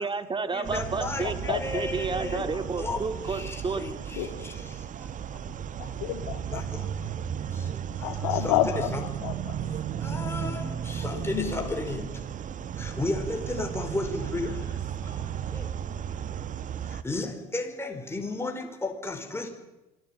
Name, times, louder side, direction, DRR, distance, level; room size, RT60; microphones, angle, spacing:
voice 1, 0.0-3.9, right 4 dB, 25° right, 11 dB, 2.4 m, -31 dB
voice 2, 0.5-2.4 2.8-3.0 3.3-4.2 6.5-6.6 8.4-9.0 10.0-12.0 12.8-14.5 17.0-19.5, left 2 dB, 15° left, 3 dB, 4.7 m, -33 dB
sound 1, 0.6-17.0, right 8 dB, 45° right, 1.3 m, -34 dB
voice 3, 5.8-6.6 8.0-9.5 11.1-11.5, left 12 dB, 75° left, 7 dB, 2.6 m, -29 dB
26.0 x 18.5 x 9.1 m, 1.0 s
hypercardioid pair, 65°, 19 cm